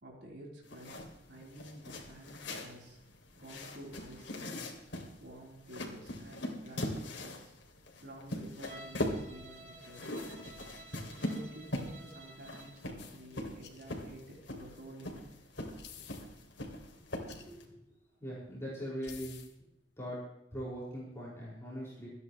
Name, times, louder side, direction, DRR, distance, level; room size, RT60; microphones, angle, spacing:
voice 1, 0.0-3.0 3.3-4.7 5.2-7.5 8.0-10.3 11.1-15.3, right 1 dB, 70° right, -2 dB, 3.7 m, -51 dB
sound 1, 0.6-17.6, left 1 dB, 90° left, 2.6 m, -41 dB
Bowed string instrument, 8.6-12.9, right 2 dB, 40° right, 2.1 m, -53 dB
sound 2, 13.0-13.2 13.6-13.8 14.1-14.2 15.8-16.3 17.3-17.4 19.0-19.5, left 7 dB, 65° left, 1.8 m, -51 dB
voice 2, 17.2-17.6 18.2-19.4 20.0-20.2 20.5-22.1, equal, 15° left, -7 dB, 5.2 m, -41 dB
26.5 x 9.8 x 3.1 m, 0.84 s
head